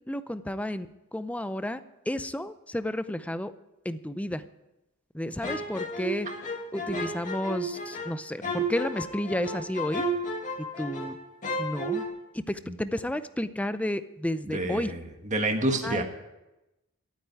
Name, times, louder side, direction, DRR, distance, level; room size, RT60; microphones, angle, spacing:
voice 1, 0.1-0.9 1.1-1.8 2.1-3.5 3.8-4.4 5.1-6.3 6.7-10.0 10.8-11.2 11.6-12.0 12.3-14.9 15.8-16.0, left 1 dB, 5° left, 12 dB, 0.5 m, -31 dB
sound 1, 5.4-11.2 11.4-12.1, right 1 dB, 35° left, 2.3 m, -32 dB
voice 2, 14.5-16.0, right 1 dB, 35° right, 4 dB, 1.5 m, -28 dB
12.0 x 9.1 x 9.5 m, 0.96 s
head